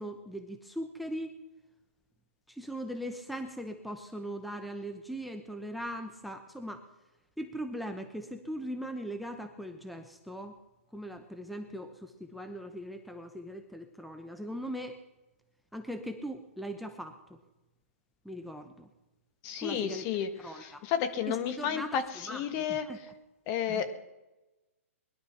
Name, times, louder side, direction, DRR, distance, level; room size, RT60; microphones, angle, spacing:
voice 1, 0.0-1.3 2.5-6.8 7.4-10.5 10.9-15.0 15.7-17.4 18.2-18.9 19.6-20.0 20.4-20.9 21.3-22.0 22.3-23.0 23.7-23.8, equal, ahead, 6 dB, 0.8 m, -40 dB
voice 2, 19.4-22.9 23.5-23.9, left 8 dB, 35° left, 10 dB, 1.4 m, -32 dB
20.5 x 11.5 x 5.9 m, 1.1 s
hypercardioid pair, 140°, 8 cm